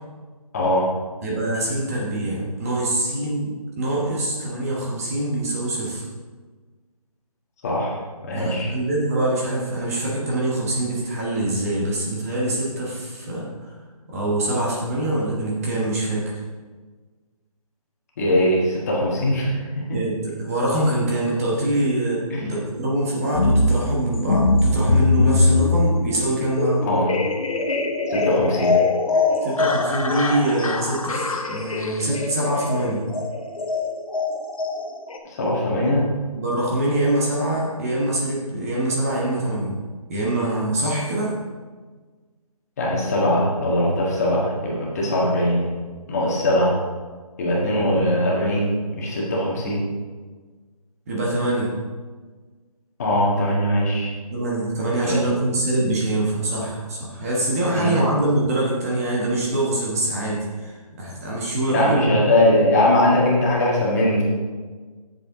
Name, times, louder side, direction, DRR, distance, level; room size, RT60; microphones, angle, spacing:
voice 1, 0.5-1.0 7.6-8.7 18.2-20.0 22.3-22.4 26.8-27.1 28.1-28.8 35.2-36.1 42.8-45.7 46.1-46.8 47.4-49.9 53.0-54.1 55.0-55.2 57.7-58.0 61.7-64.2, left 1 dB, 25° left, -4 dB, 1.6 m, -21 dB
voice 2, 1.2-6.0 8.3-13.8 14.1-16.4 19.9-26.8 29.4-33.1 36.3-39.8 40.1-41.3 51.1-51.7 54.3-62.0, right 1 dB, 25° right, -4 dB, 1.2 m, -24 dB
sound 1, 23.3-35.2, left 3 dB, 60° left, 1.1 m, -22 dB
8.2 x 7.2 x 3.8 m, 1.4 s
figure-of-eight pair, 165°, 20 cm